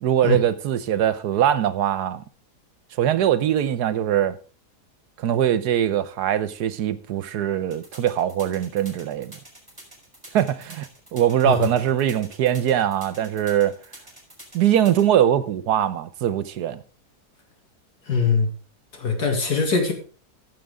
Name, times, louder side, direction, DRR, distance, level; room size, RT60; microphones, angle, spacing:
voice 1, 0.0-2.2 3.0-4.4 5.2-9.3 10.3-13.7 14.5-16.8, right 10 dB, 80° right, 1.3 m, -22 dB
sound 1, 7.7-15.0, right 1 dB, 10° right, 4.2 m, -45 dB
voice 2, 18.1-18.5 18.9-19.9, left 4 dB, 75° left, 2.9 m, -22 dB
15.0 x 7.6 x 3.6 m
omnidirectional pair, 1.7 m